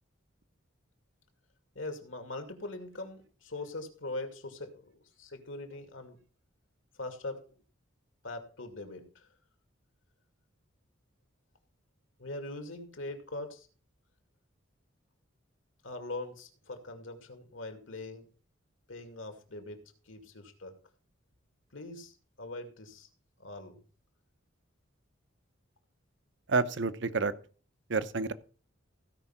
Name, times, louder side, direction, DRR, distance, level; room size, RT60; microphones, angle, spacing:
voice 1, 1.7-6.2 7.0-7.6 8.2-9.3 12.2-13.7 15.8-18.3 18.9-20.8 21.7-23.1 23.4-23.8, left 2 dB, 75° left, 2.4 m, -42 dB
voice 2, 26.5-27.3 27.9-28.3, right 4 dB, 60° right, 0.8 m, -29 dB
16.0 x 5.4 x 5.8 m
head